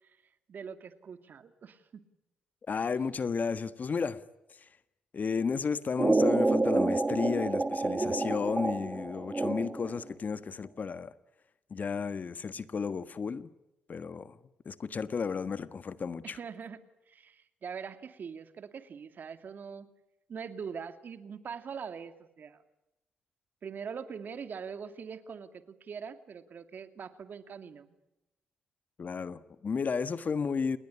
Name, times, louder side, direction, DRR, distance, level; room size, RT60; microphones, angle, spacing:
voice 1, 0.5-2.0 16.2-16.8 17.1-19.9 20.3-22.6 23.6-28.0, right 6 dB, 55° right, 10 dB, 2.3 m, -42 dB
voice 2, 2.7-4.2 5.1-11.1 11.7-13.5 13.9-14.4 14.6-16.4 29.0-30.8, left 5 dB, 45° left, 13 dB, 1.4 m, -33 dB
sound 1, 6.0-10.0, right 2 dB, 25° right, 2.3 m, -28 dB
28.5 x 20.5 x 9.9 m, 0.93 s
hypercardioid pair, 45°, 4 cm